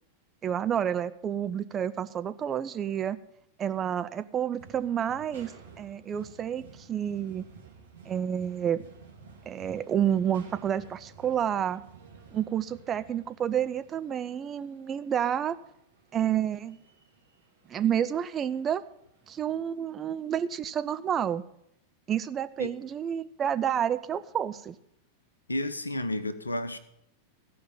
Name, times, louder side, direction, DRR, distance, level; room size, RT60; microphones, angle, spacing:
voice 1, 0.4-3.2 3.6-5.5 5.8-7.4 8.1-8.8 9.5-11.8 12.3-15.6 16.1-16.8 17.7-18.8 19.3-21.4 22.1-24.8, right 9 dB, 25° right, 11 dB, 0.5 m, -29 dB
sound 1, 4.6-19.9, right 5 dB, 70° right, 2.3 m, -53 dB
voice 2, 25.5-26.8, left 1 dB, 80° left, 12 dB, 0.8 m, -31 dB
15.0 x 5.2 x 8.9 m, 0.77 s
figure-of-eight pair, 90°, 0 cm